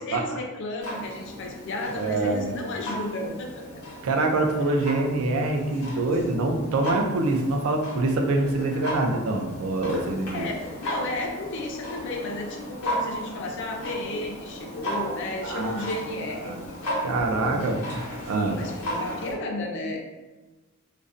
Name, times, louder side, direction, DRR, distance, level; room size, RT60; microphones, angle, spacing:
voice 1, 0.0-3.8 10.3-16.5 17.5-17.9 18.3-20.0, left 2 dB, 55° left, 1 dB, 0.4 m, -33 dB
Clock, 0.8-19.3, equal, 85° left, 0.7 m, -35 dB
voice 2, 1.9-2.5 4.0-10.5 15.4-15.9 16.4-16.6 17.0-17.8 18.3-18.6, right 2 dB, 75° right, 3 dB, 0.4 m, -25 dB
2.5 x 2.0 x 2.4 m, 1.2 s
head